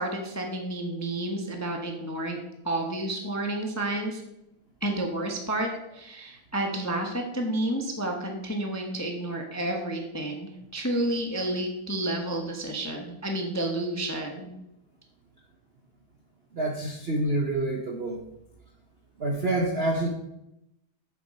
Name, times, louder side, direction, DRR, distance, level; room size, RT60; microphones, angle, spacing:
voice 1, 0.0-2.4 2.6-4.2 4.8-14.5, right 1 dB, 15° left, 2 dB, 0.7 m, -30 dB
voice 2, 16.5-18.2 19.2-20.1, right 2 dB, 50° right, 0 dB, 0.8 m, -27 dB
8.3 x 7.6 x 4.3 m, 0.85 s
omnidirectional pair, 2.1 m